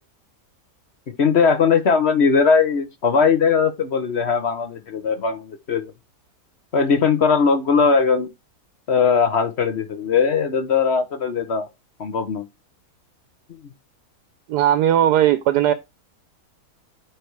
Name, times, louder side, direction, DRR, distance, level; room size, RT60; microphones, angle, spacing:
voice 1, 1.2-5.9 6.7-8.3 8.9-11.7 12.0-12.4, left 5 dB, 50° left, 0.9 m, -19 dB
voice 2, 14.5-15.7, right 11 dB, 85° right, 1.2 m, -17 dB
9.0 x 3.3 x 4.6 m
omnidirectional pair, 1.7 m